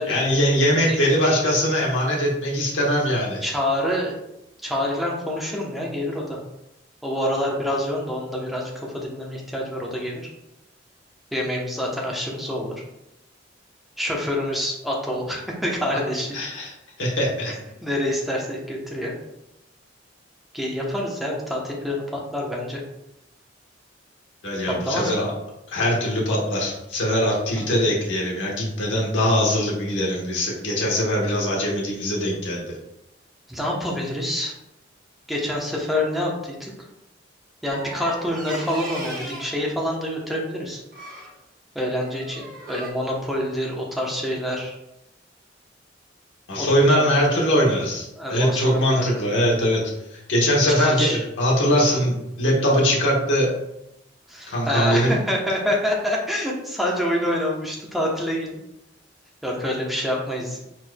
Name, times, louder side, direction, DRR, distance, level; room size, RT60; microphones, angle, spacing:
voice 1, 0.0-3.4 16.3-16.7 17.0-17.5 24.4-25.3 25.7-32.8 46.5-49.8 50.1-53.5 54.5-55.1, equal, 80° left, -3 dB, 1.2 m, -21 dB
voice 2, 3.4-4.1 4.6-6.4 7.0-10.2 11.3-12.7 14.0-16.4 17.8-19.1 20.5-22.8 24.7-25.1 27.6-27.8 33.5-34.5 35.3-36.7 37.6-40.8 41.7-44.8 46.6-47.2 48.2-49.2 50.7-51.2 51.9-52.0 54.3-58.6 59.4-60.6, left 1 dB, ahead, -2 dB, 0.9 m, -27 dB
sound 1, 37.7-39.6 40.9-41.3 42.0-42.9, right 1 dB, 50° right, 1.2 m, -37 dB
4.6 x 4.4 x 2.3 m, 0.87 s
head